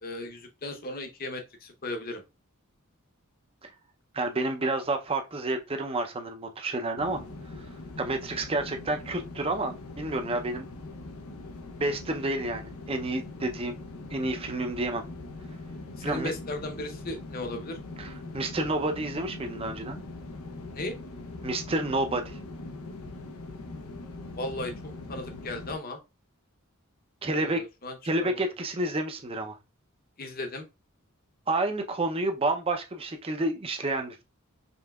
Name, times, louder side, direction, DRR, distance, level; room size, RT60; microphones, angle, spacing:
voice 1, 0.0-2.2 16.0-17.8 20.7-21.0 24.4-26.0 27.3-28.4 30.2-30.6, left 2 dB, 45° left, 0.8 m, -36 dB
voice 2, 4.1-7.2 8.0-10.7 11.8-13.8 14.1-15.0 16.0-16.3 18.0-20.0 21.4-22.4 27.2-27.6 28.0-29.6 31.5-34.2, right 2 dB, 25° right, 0.6 m, -29 dB
sound 1, 7.0-25.8, left 2 dB, 90° left, 0.7 m, -42 dB
5.3 x 3.3 x 2.3 m
head